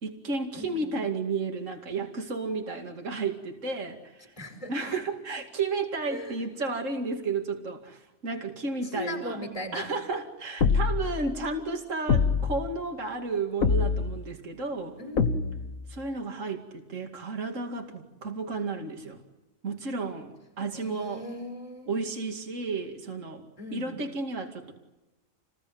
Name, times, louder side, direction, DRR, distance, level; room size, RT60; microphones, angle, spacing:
voice 1, 0.0-4.3 4.7-9.4 9.7-15.0 15.9-19.2 19.6-21.2 21.9-23.5 23.7-24.7, right 3 dB, 65° right, 3 dB, 2.8 m, -32 dB
voice 2, 0.6-0.9 4.4-4.9 6.1-6.4 8.8-9.9 15.0-15.7 20.7-22.0 23.6-24.0, left 1 dB, 25° left, 5 dB, 5.5 m, -38 dB
sound 1, 10.6-11.2 12.1-12.7 13.6-14.2 15.2-15.8, left 5 dB, 80° left, 1.9 m, -24 dB
29.5 x 20.5 x 9.5 m, 1.0 s
omnidirectional pair, 1.4 m